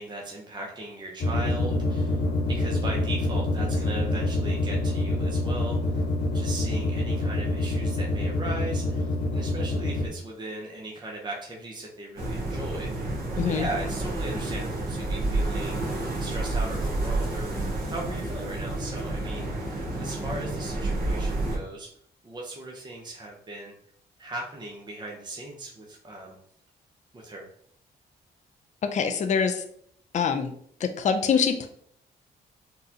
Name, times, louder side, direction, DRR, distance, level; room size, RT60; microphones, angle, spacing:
voice 1, 0.0-6.0 6.3-15.8 16.2-19.5 20.0-21.9 22.2-23.7 24.2-26.3 27.1-27.5, right 2 dB, 25° right, -2 dB, 0.8 m, -38 dB
sound 1, 1.2-10.1, left 2 dB, 85° left, 1.3 m, -26 dB
sound 2, 12.2-21.6, right 2 dB, 55° right, 1.5 m, -29 dB
voice 2, 13.4-13.7 28.8-29.6 30.1-30.5 30.8-31.7, left 6 dB, 40° left, 7 dB, 0.4 m, -24 dB
3.9 x 2.4 x 2.7 m, 0.64 s
supercardioid pair, 65°, 18 cm